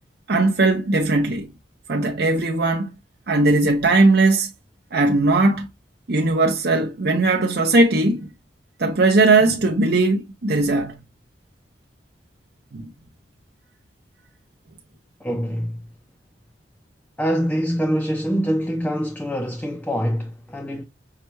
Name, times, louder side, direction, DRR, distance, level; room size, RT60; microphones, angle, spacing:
voice 1, 0.3-1.5 1.9-2.9 3.3-4.5 4.9-5.7 6.1-8.3 8.8-11.0 12.7-12.9, right 2 dB, 60° right, 0.6 m, -19 dB
voice 2, 15.2-15.9 17.2-20.8, equal, 10° left, 0.4 m, -24 dB
5.6 x 2.2 x 3.0 m
head